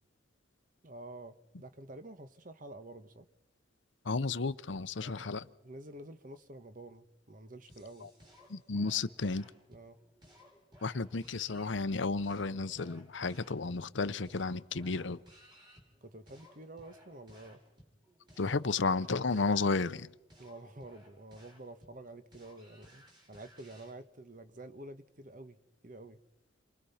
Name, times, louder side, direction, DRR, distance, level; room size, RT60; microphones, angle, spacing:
voice 1, 0.8-3.3 5.0-5.3 5.6-8.1 9.7-10.0 16.0-17.6 20.4-26.2, right 1 dB, 45° right, 1.3 m, -49 dB
voice 2, 4.1-5.5 8.5-9.5 10.8-15.2 18.4-20.1, left 4 dB, 70° left, 0.8 m, -32 dB
sound 1, 7.7-23.9, equal, 25° right, 5.3 m, -60 dB
28.5 x 23.5 x 5.8 m
head